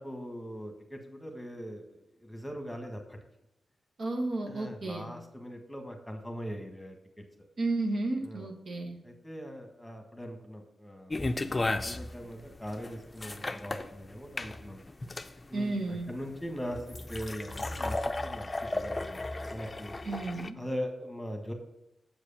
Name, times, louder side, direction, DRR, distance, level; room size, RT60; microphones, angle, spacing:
voice 1, 0.0-3.2 4.4-7.2 8.2-8.5 9.0-14.8 15.5-16.8 17.1-20.0 20.6-21.5, equal, 10° left, 4 dB, 1.5 m, -41 dB
voice 2, 4.0-5.1 7.6-9.0 15.5-16.1 20.0-20.6, right 2 dB, 60° right, 2 dB, 1.4 m, -32 dB
sound 1, 11.1-20.5, left 2 dB, 25° left, 0.5 m, -35 dB
7.4 x 4.8 x 7.0 m, 0.87 s
cardioid pair, 65°, 0 cm